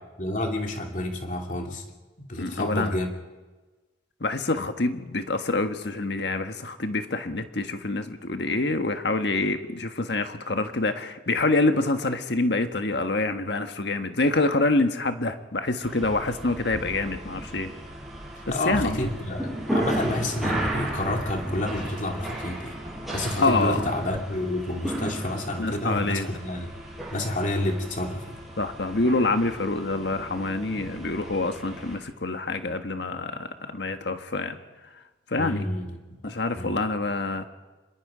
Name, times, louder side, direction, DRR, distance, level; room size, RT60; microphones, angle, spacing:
voice 1, 0.2-1.8 2.2-3.1 18.4-22.7 23.1-26.7 27.1-28.2 35.4-36.8, left 1 dB, 45° left, 2 dB, 2.8 m, -29 dB
voice 2, 2.4-3.0 4.2-17.7 18.5-19.1 23.4-23.9 25.6-26.3 28.6-34.6 35.3-35.7 36.2-37.5, left 2 dB, 65° left, 7 dB, 1.5 m, -26 dB
sound 1, 15.8-32.0, right 1 dB, ahead, 6.5 m, -35 dB
26.0 x 22.0 x 5.1 m, 1.2 s
head